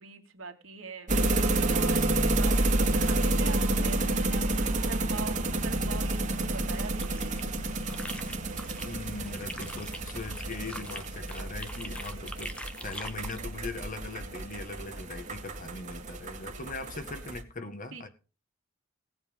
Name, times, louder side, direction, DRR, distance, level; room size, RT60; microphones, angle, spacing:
voice 1, 0.0-7.5 10.8-10.9 12.1-12.6 16.3-16.9 17.9-18.1, right 4 dB, 65° right, 2.5 m, -44 dB
sound 1, 1.1-17.4, right 2 dB, 35° right, 2.0 m, -30 dB
sound 2, 6.8-8.9 9.2-13.4, left 1 dB, 5° left, 1.1 m, -43 dB
voice 2, 8.8-12.5 12.8-18.1, left 3 dB, 40° left, 1.7 m, -40 dB
18.0 x 8.1 x 5.4 m
head